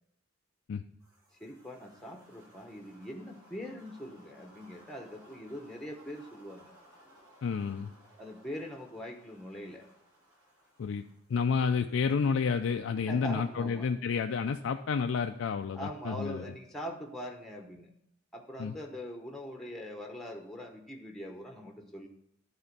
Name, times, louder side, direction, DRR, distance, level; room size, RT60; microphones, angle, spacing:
sound 1, 1.0-15.4, equal, 20° right, 3.7 m, -61 dB
voice 1, 1.4-6.7 8.2-9.8 13.1-13.9 15.7-17.9 18.3-22.1, equal, ahead, 2 dB, 0.9 m, -42 dB
voice 2, 7.4-7.9 10.8-11.0 11.3-16.4 18.6-18.7, left 5 dB, 70° left, 5 dB, 0.4 m, -30 dB
11.5 x 4.3 x 5.2 m, 0.75 s
head